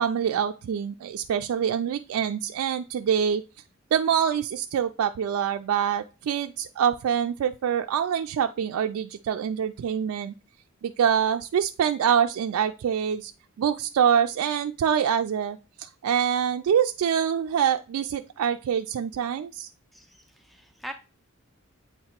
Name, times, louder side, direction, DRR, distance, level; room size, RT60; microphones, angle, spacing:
voice 1, 0.0-3.4 3.9-10.3 10.8-13.3 13.6-19.7, right 8 dB, 80° right, 6 dB, 0.3 m, -25 dB
voice 2, 19.9-20.9, equal, ahead, 5 dB, 0.4 m, -42 dB
8.0 x 2.8 x 4.3 m, 0.32 s
head